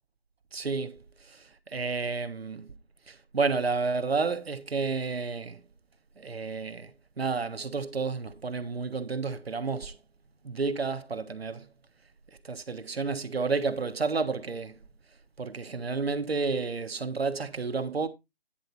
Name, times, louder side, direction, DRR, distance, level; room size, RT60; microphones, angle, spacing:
voice 1, 0.5-2.7 3.1-5.6 6.2-10.0 10.4-11.7 12.4-14.8 15.4-18.1, right 4 dB, 80° right, 1.4 m, -31 dB
10.5 x 4.0 x 5.6 m
figure-of-eight pair, 165°, 30 cm